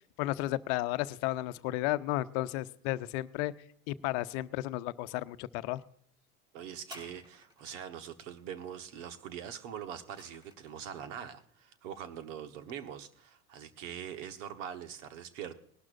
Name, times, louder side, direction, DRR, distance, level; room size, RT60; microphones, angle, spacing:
voice 1, 0.2-3.5 3.9-5.8, left 17 dB, 65° left, 13 dB, 0.7 m, -33 dB
voice 2, 6.5-15.5, right 9 dB, 80° right, 9 dB, 1.3 m, -43 dB
sound 1, 6.8-7.9 9.6-10.9 11.7-11.8, left 1 dB, 10° right, 3.5 m, -53 dB
19.0 x 12.0 x 2.6 m, 0.63 s
hypercardioid pair, 95°, 38 cm